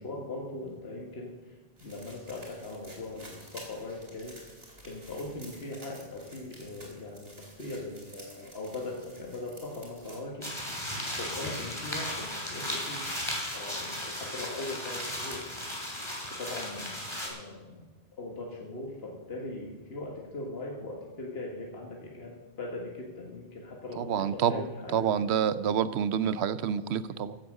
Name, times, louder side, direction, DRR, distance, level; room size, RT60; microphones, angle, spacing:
voice 1, 0.0-4.4 4.8-10.8 11.2-13.2 13.5-15.4 16.3-16.9 17.2-17.9 18.2-25.1 26.2-26.4, left 2 dB, 75° left, -1 dB, 2.0 m, -40 dB
sound 1, 1.8-10.2, right 1 dB, 65° right, 4.2 m, -51 dB
sound 2, 10.4-17.3, left 1 dB, 25° left, 3.2 m, -36 dB
voice 2, 24.0-24.6 24.9-27.4, right 8 dB, 85° right, 15 dB, 0.9 m, -28 dB
15.5 x 8.8 x 6.5 m, 1.3 s
omnidirectional pair, 1.1 m